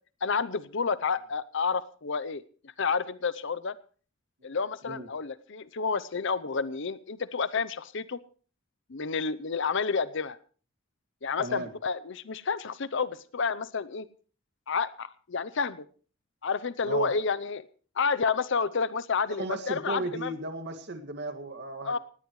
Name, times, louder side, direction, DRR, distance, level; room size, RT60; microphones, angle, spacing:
voice 1, 0.2-2.4 2.8-3.8 4.4-8.2 8.9-10.4 11.2-14.1 14.7-15.8 16.4-17.6 18.0-20.3 21.8-22.0, left 5 dB, 65° left, 15 dB, 0.7 m, -30 dB
voice 2, 11.4-11.7 16.8-17.1 19.3-22.0, right 2 dB, 55° right, 7 dB, 2.0 m, -35 dB
18.5 x 17.5 x 3.2 m, 0.40 s
head